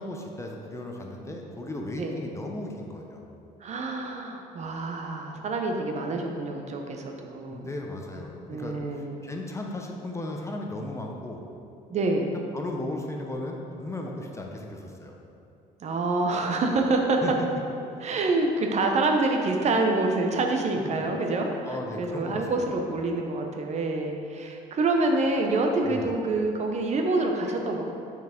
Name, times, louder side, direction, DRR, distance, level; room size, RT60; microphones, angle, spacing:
voice 1, 0.0-3.2 7.5-11.4 12.5-15.1 17.2-17.3 20.8-21.1 21.7-22.8 25.8-26.1, left 1 dB, 15° left, 1 dB, 0.6 m, -36 dB
voice 2, 3.6-7.7 8.5-9.3 11.9-12.3 15.8-17.2 18.0-27.8, right 2 dB, 45° right, 2 dB, 0.7 m, -27 dB
5.9 x 4.7 x 3.6 m, 2.7 s
cardioid pair, 95°, 16 cm